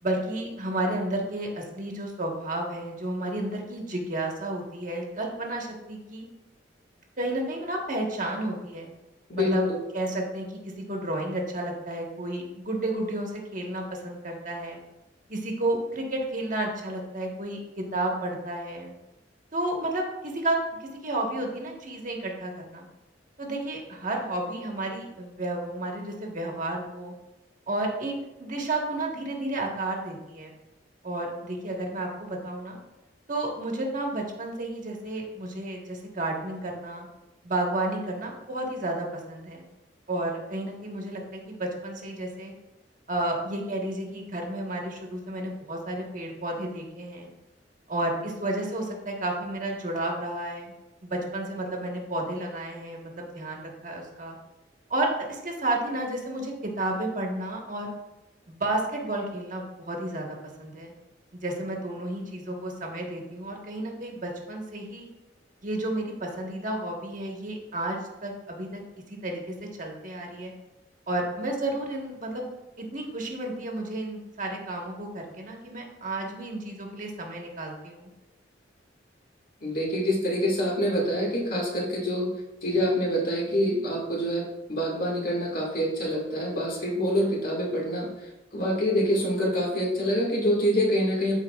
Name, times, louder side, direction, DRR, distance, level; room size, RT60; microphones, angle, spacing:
voice 1, 0.0-6.3 7.2-8.9 9.3-9.7 9.9-14.8 15.3-18.9 19.5-22.9 23.4-27.1 27.7-30.5 31.0-32.8 33.3-37.1 37.4-39.6 40.1-42.5 43.1-47.3 47.9-50.7 51.0-54.4 54.9-57.9 58.5-60.9 61.3-65.1 65.6-68.8 69.1-70.5 71.1-72.5 72.8-78.1, right 1 dB, 45° right, 0 dB, 1.3 m, -32 dB
voice 2, 9.3-9.8 79.6-82.3 82.6-88.1 88.5-91.3, equal, 50° left, -2 dB, 1.9 m, -26 dB
13.5 x 4.7 x 2.4 m, 1.0 s
head